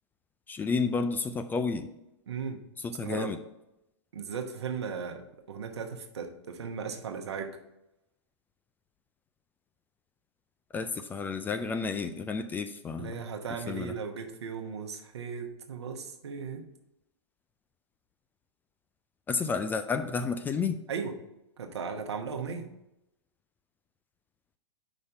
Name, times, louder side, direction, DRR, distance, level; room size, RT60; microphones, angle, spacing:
voice 1, 0.5-1.9 2.8-3.4 10.7-13.2 13.7-13.9 19.3-20.8, left 4 dB, 15° left, 8 dB, 0.3 m, -31 dB
voice 2, 2.3-2.6 3.0-3.3 4.1-7.6 13.0-16.6 20.9-21.1 21.6-22.7, right 6 dB, 70° right, 4 dB, 1.1 m, -37 dB
5.4 x 5.1 x 5.3 m, 0.88 s
figure-of-eight pair, 110°, 15 cm